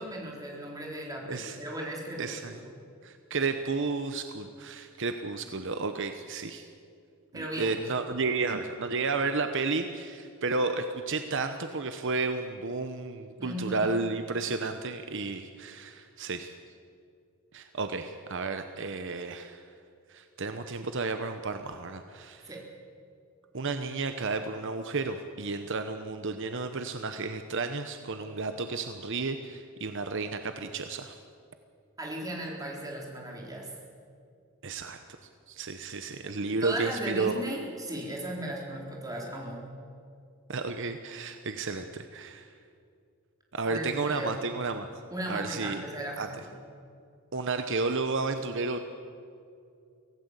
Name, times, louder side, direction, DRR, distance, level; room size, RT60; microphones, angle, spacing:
voice 1, 0.0-2.7 7.3-7.8 13.4-14.0 22.5-22.6 32.0-33.7 36.5-39.7 43.6-44.4 45.1-46.5, right 1 dB, 15° right, -1 dB, 4.0 m, -36 dB
voice 2, 1.3-1.6 2.2-2.5 3.0-6.7 7.3-16.5 17.5-19.6 20.1-22.5 23.5-31.2 34.6-35.0 35.5-37.4 40.5-42.5 43.5-44.9 45.3-45.8 46.2-46.3 47.3-48.8, right 3 dB, 55° right, 8 dB, 1.0 m, -32 dB
24.0 x 17.0 x 8.2 m, 2.4 s
head